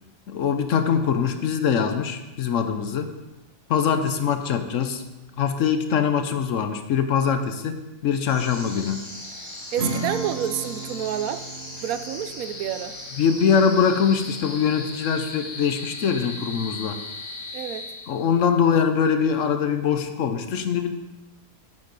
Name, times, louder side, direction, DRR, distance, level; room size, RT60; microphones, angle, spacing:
voice 1, 0.3-3.1 3.7-5.0 5.4-9.1 13.2-17.0 18.1-20.9, left 7 dB, 65° left, 1.0 m, -23 dB
sound 1, 8.2-18.5, left 2 dB, 85° left, 2.8 m, -38 dB
voice 2, 9.7-11.5 11.8-12.9 17.5-17.9, right 10 dB, 80° right, 1.0 m, -28 dB
Acoustic guitar / Strum, 9.8-15.8, right 3 dB, 45° right, 1.9 m, -36 dB
9.9 x 7.3 x 4.0 m
omnidirectional pair, 1.5 m